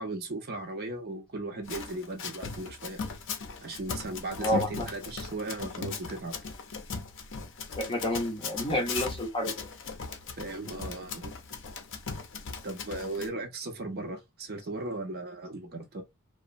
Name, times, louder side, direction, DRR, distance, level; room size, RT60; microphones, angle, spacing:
voice 1, 0.0-3.0 3.6-6.4 10.4-11.3 12.6-16.0, right 2 dB, 45° right, 0.6 m, -37 dB
Run, 1.7-13.3, left 5 dB, 60° left, 0.5 m, -38 dB
voice 2, 4.4-4.9 7.7-9.5, equal, 25° left, 0.7 m, -29 dB
2.9 x 2.0 x 2.5 m
head